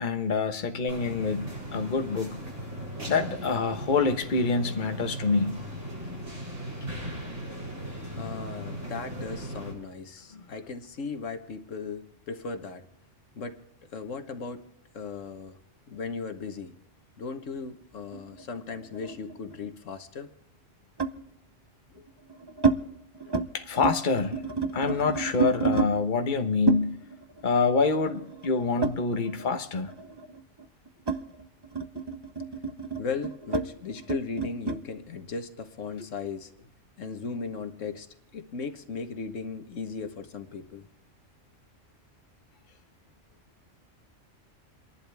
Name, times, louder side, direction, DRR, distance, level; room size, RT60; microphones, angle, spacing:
voice 1, 0.0-2.4 3.1-5.5 10.3-10.4 23.5-24.4 24.7-27.0 27.4-29.9, left 4 dB, 40° left, 6 dB, 1.2 m, -26 dB
sound 1, 0.9-9.7, equal, 75° right, 7.7 m, -38 dB
voice 2, 8.1-12.8 13.4-13.6 13.9-14.7 14.9-15.6 15.9-16.7 17.2-20.3 21.9-22.0 33.0-36.5 37.0-38.1 38.3-40.9, left 5 dB, 80° left, 8 dB, 1.5 m, -37 dB
sound 2, 18.1-19.7 21.0-21.2 22.0-22.8 23.1-23.5 23.7-25.9 26.7-29.5 29.8-34.8, right 4 dB, 25° right, 0.6 m, -30 dB
29.0 x 11.5 x 3.4 m, 0.83 s
omnidirectional pair, 1.3 m